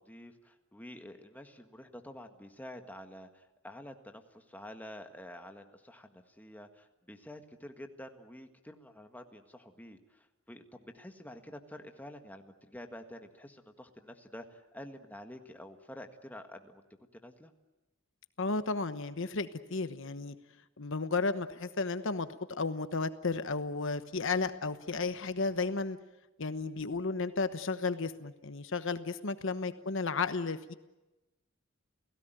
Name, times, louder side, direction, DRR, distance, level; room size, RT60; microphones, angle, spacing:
voice 1, 0.0-16.8 17.1-17.5, left 1 dB, 10° left, 5 dB, 1.7 m, -49 dB
voice 2, 18.4-20.3 20.8-22.3 22.6-26.0 26.4-30.7, left 3 dB, 65° left, 11 dB, 1.1 m, -33 dB
29.5 x 17.5 x 9.2 m, 1.0 s
head